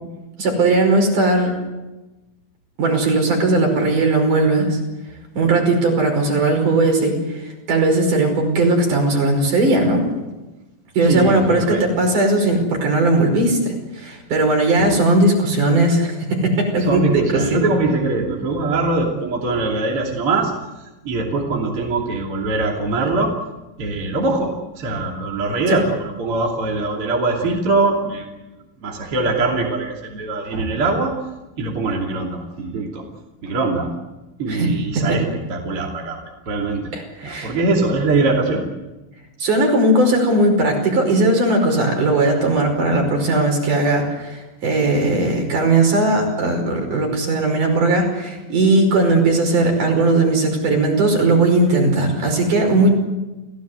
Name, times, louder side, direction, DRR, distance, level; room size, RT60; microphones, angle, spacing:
voice 1, 0.4-1.5 2.8-4.8 5.3-10.1 11.0-17.4 34.5-34.7 35.0-35.1 36.9-37.6 39.4-52.9, right 2 dB, 55° right, 3 dB, 6.7 m, -18 dB
voice 2, 11.0-11.8 14.8-14.9 16.8-23.3 23.8-28.3 28.8-31.1 31.6-33.1 33.4-33.9 34.4-36.2 36.5-36.9 37.2-38.6, right 3 dB, 40° right, -1 dB, 3.5 m, -22 dB
29.0 x 17.0 x 8.1 m, 1.1 s
omnidirectional pair, 4.3 m